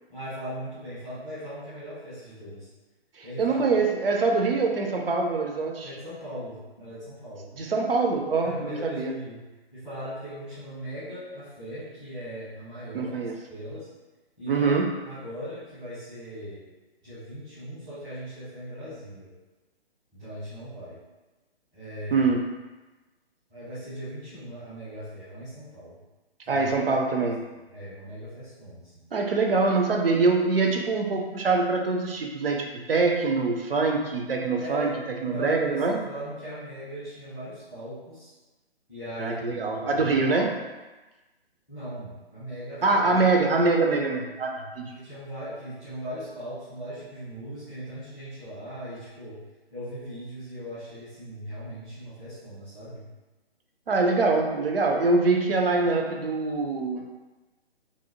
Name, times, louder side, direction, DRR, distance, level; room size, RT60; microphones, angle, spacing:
voice 1, 0.1-2.7 3.2-3.8 5.8-7.5 8.4-9.4 9.7-13.2 13.5-13.9 14.4-14.7 15.0-16.6 17.0-19.3 20.1-21.0 21.7-22.3 23.5-26.0 26.4-26.9 27.7-29.1 34.6-34.9 35.3-38.3 38.9-40.1 41.7-43.1 44.9-49.4 49.7-53.1, equal, ahead, -17 dB, 0.4 m, -39 dB
voice 2, 3.2-5.9 7.6-9.1 12.9-13.4 14.5-14.9 22.1-22.5 26.5-27.4 29.1-34.9 35.2-36.0 39.2-40.6 42.8-44.9 53.9-57.1, right 3 dB, 65° right, 2 dB, 0.5 m, -24 dB
2.6 x 2.0 x 2.8 m, 1.1 s
figure-of-eight pair, 135°, 31 cm